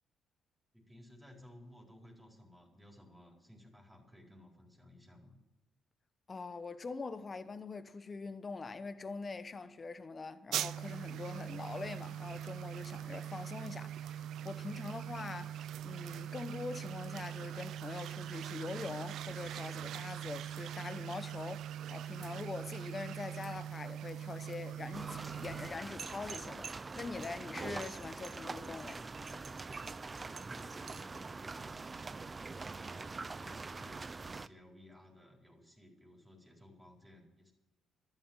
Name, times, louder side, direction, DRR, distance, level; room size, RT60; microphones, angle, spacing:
voice 1, 0.7-5.3 30.0-37.5, left 1 dB, 10° right, 4.5 m, -58 dB
voice 2, 6.3-26.7 27.0-29.0, left 4 dB, 35° left, 1.0 m, -43 dB
sound 1, 10.5-25.7, right 10 dB, 75° right, 0.4 m, -42 dB
sound 2, 24.9-34.5, right 4 dB, 30° right, 0.5 m, -44 dB
sound 3, 26.0-31.2, right 6 dB, 50° right, 1.3 m, -50 dB
13.0 x 11.5 x 8.9 m
cardioid pair, 90°, 0 cm